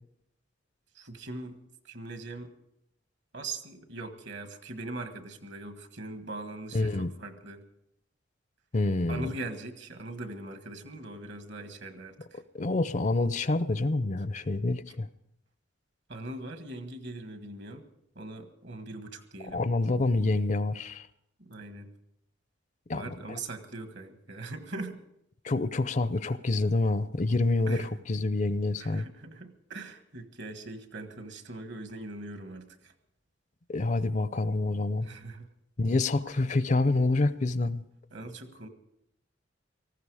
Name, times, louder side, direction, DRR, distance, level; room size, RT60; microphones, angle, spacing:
voice 1, 0.9-1.6 1.8-2.5 3.3-7.6 9.1-12.4 16.1-17.8 18.1-19.6 21.4-21.9 22.9-25.0 27.7-27.9 28.8-32.9 35.0-35.5 38.1-38.7, right 2 dB, 65° right, 8 dB, 1.6 m, -41 dB
voice 2, 6.7-7.1 8.7-9.3 12.3-15.1 19.4-21.1 22.9-23.1 25.4-29.1 33.7-35.1 35.8-37.8, left 2 dB, 40° left, 15 dB, 0.5 m, -27 dB
18.5 x 15.0 x 4.9 m, 0.79 s
head